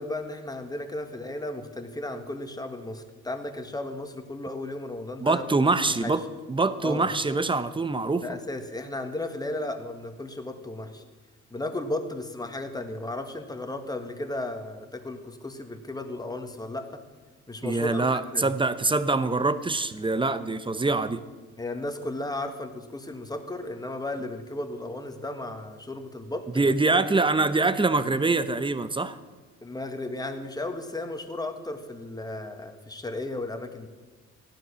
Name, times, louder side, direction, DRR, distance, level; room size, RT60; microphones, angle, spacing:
voice 1, 0.0-5.4 6.0-6.1 6.8-7.1 8.2-11.0 11.5-17.0 17.5-18.1 18.3-18.5 21.6-27.0 29.6-33.9, left 2 dB, 15° left, 6 dB, 1.7 m, -34 dB
voice 2, 5.2-6.2 6.5-8.2 17.6-21.2 26.5-29.1, right 3 dB, 15° right, 12 dB, 0.9 m, -24 dB
15.0 x 11.5 x 6.3 m, 1.4 s
cardioid pair, 90°, 30 cm